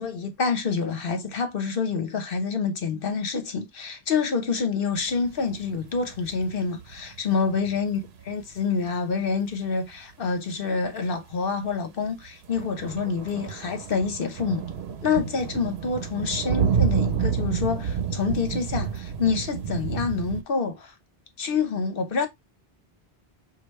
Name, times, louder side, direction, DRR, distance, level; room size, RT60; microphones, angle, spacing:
voice 1, 0.0-14.6 15.0-20.9 21.4-22.3, left 5 dB, 65° left, 1.0 m, -27 dB
sound 1, 4.9-8.9 9.3-9.4 10.0-10.1 10.9-11.0 11.3-11.4 11.7-11.8 12.0-20.4, right 7 dB, 90° right, 1.0 m, -30 dB
4.9 x 2.3 x 3.1 m
omnidirectional pair, 1.0 m